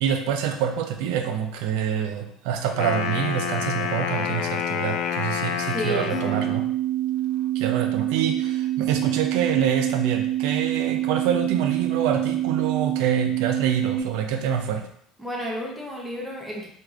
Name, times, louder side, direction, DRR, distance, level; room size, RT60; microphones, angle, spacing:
voice 1, 0.0-6.7 7.5-14.8, right 8 dB, 80° right, 5 dB, 0.4 m, -26 dB
Wind instrument woodwind instrument, 2.7-6.7, left 7 dB, 70° left, 0.3 m, -28 dB
voice 2, 5.7-6.4 15.2-16.7, equal, ahead, -3 dB, 0.7 m, -31 dB
sound 1, 6.1-14.0, right 13 dB, 35° left, 0.9 m, -26 dB
4.5 x 2.5 x 2.5 m, 0.67 s
cardioid pair, 165°, 0 cm